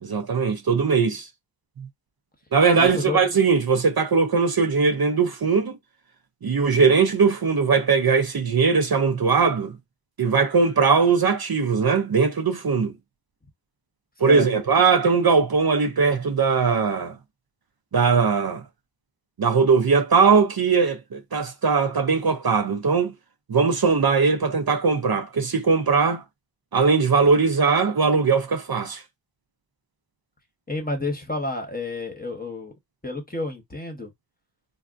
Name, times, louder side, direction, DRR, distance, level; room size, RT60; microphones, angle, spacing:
voice 1, 0.0-1.3 1.8-1.9 2.5-5.8 6.4-9.8 10.2-12.9 14.2-17.2 17.9-18.6 19.4-23.1 23.5-26.2 26.7-29.0, right 5 dB, 50° right, 0.6 m, -20 dB
voice 2, 2.8-3.2 14.2-14.5 30.7-32.7 33.0-34.1, left 2 dB, 20° left, 0.9 m, -30 dB
3.4 x 2.3 x 2.5 m
wide cardioid pair, 55°, 46 cm